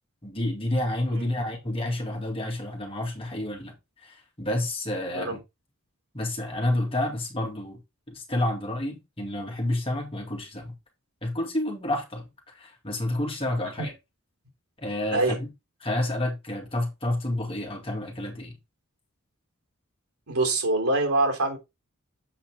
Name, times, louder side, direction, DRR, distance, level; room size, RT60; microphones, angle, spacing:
voice 1, 0.2-3.8 4.0-5.4 6.1-7.8 8.1-10.7 11.2-13.9 14.8-15.5 15.8-18.6, left 1 dB, 25° left, 2.3 m, -29 dB
voice 2, 20.3-21.6, right 2 dB, 85° right, 3.6 m, -24 dB
7.7 x 5.8 x 3.6 m
head